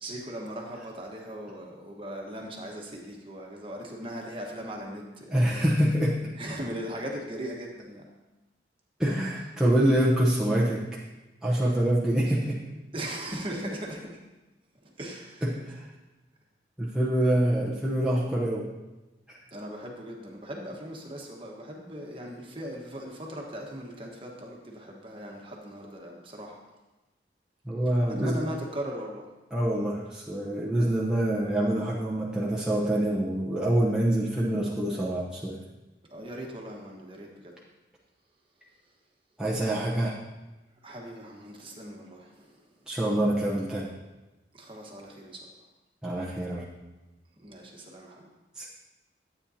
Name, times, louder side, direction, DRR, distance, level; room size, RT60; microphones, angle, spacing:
voice 1, 0.0-5.7 6.4-8.0 12.9-14.2 15.0-15.6 19.5-26.6 28.2-29.2 36.1-37.5 40.8-42.6 44.5-45.4 47.4-48.3, right 1 dB, 30° right, -1 dB, 1.4 m, -39 dB
voice 2, 5.3-6.3 9.0-11.0 11.4-12.6 15.4-15.9 16.8-18.7 19.3-19.4 27.6-28.4 29.5-35.6 39.4-40.2 42.9-43.9 46.0-46.7 48.5-48.7, right 1 dB, 5° right, -6 dB, 0.9 m, -26 dB
12.5 x 8.6 x 2.8 m, 1.1 s
head